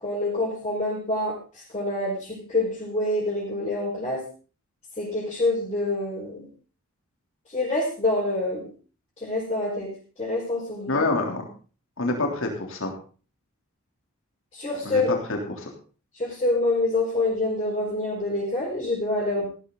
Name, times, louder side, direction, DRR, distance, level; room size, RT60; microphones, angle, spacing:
voice 1, 0.0-1.4 1.7-4.2 5.0-6.5 7.5-8.7 9.2-9.9 10.2-11.0 14.5-15.1 16.1-19.5, left 2 dB, 30° left, -7 dB, 5.1 m, -26 dB
voice 2, 10.9-11.5 12.0-12.9 14.8-15.7, left 2 dB, 65° left, 2 dB, 3.3 m, -27 dB
15.0 x 12.5 x 3.9 m, 0.38 s
head